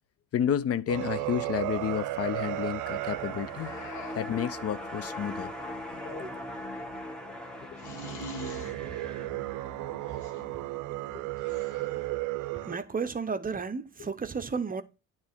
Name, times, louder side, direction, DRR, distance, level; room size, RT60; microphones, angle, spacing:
voice 1, 0.3-3.7 4.1-5.5 8.6-8.7 11.1-11.2, left 9 dB, 55° left, 0.6 m, -31 dB
sound 1, 0.9-5.6 7.8-12.8, right 18 dB, 90° right, 0.5 m, -35 dB
sound 2, 2.0-12.4 12.7-12.8, left 1 dB, 5° left, 1.3 m, -42 dB
sound 3, 3.5-4.4 5.9-6.7 7.8-8.8 10.0-10.4 11.4-12.1, left 3 dB, 80° left, 1.6 m, -44 dB
voice 2, 12.6-14.8, right 5 dB, 30° right, 0.8 m, -32 dB
9.5 x 3.2 x 5.6 m
cardioid pair, 90°, 30 cm